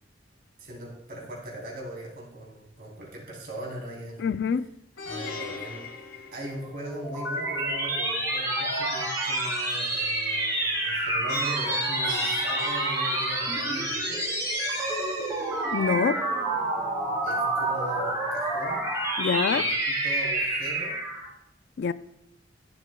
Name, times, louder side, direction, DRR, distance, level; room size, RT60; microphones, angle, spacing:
voice 1, 0.6-4.2 5.0-14.2 17.2-18.9 19.5-20.9, right 1 dB, 55° right, 3.5 m, -40 dB
voice 2, 4.2-4.7 15.7-16.3 19.2-19.7 21.8-21.9, left 6 dB, 60° left, 0.3 m, -25 dB
Plucked string instrument, 5.0-7.1 11.3-13.9, left 4 dB, 85° left, 1.8 m, -39 dB
sound 1, 6.6-21.3, right 2 dB, 15° right, 3.4 m, -28 dB
14.0 x 8.1 x 2.2 m
head